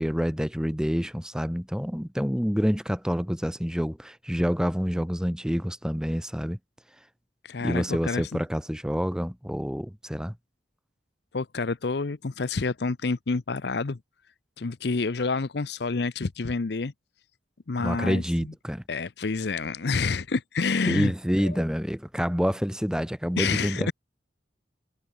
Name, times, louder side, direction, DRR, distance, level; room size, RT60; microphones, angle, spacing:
voice 1, 0.0-6.6 7.6-10.3 17.8-18.8 20.9-23.9, equal, 5° right, 1.0 m, -27 dB
voice 2, 7.4-8.4 11.3-14.0 14.6-16.9 17.7-18.2 18.9-21.1 21.4-21.6 23.4-23.9, left 4 dB, 65° left, 0.7 m, -28 dB
head